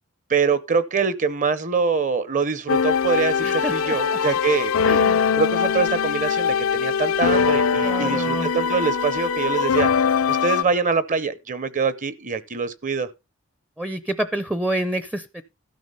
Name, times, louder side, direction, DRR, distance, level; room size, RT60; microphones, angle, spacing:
voice 1, 0.3-5.0 5.4-9.9 10.3-13.1, right 5 dB, 35° right, 0.7 m, -24 dB
sound 1, 2.7-10.6, left 6 dB, 85° left, 0.5 m, -22 dB
voice 2, 3.4-4.0 4.8-5.4 7.8-8.5 13.8-15.4, right 1 dB, 5° right, 0.5 m, -28 dB
13.0 x 5.8 x 5.4 m
head